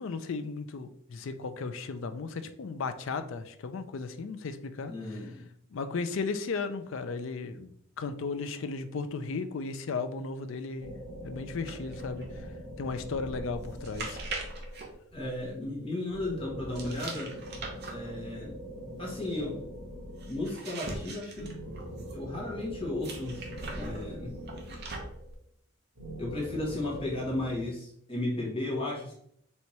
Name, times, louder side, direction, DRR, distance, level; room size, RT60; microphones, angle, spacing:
voice 1, 0.0-5.2 5.7-7.7 8.0-10.9 11.2-12.5 12.8-14.2, left 4 dB, 65° left, 0.4 m, -35 dB
voice 2, 4.9-5.5 15.1-17.3 17.9-18.6 19.0-19.6 20.3-21.5 22.1-23.4 23.7-24.4 26.2-29.1, left 2 dB, 25° left, 1.1 m, -34 dB
sound 1, 10.8-15.0 16.1-20.7 21.3-25.3 25.9-27.6, equal, 80° right, 1.5 m, -43 dB
sound 2, 11.6-15.8 16.7-22.3 23.0-25.3, right 2 dB, 45° right, 0.8 m, -42 dB
4.2 x 3.4 x 3.1 m
head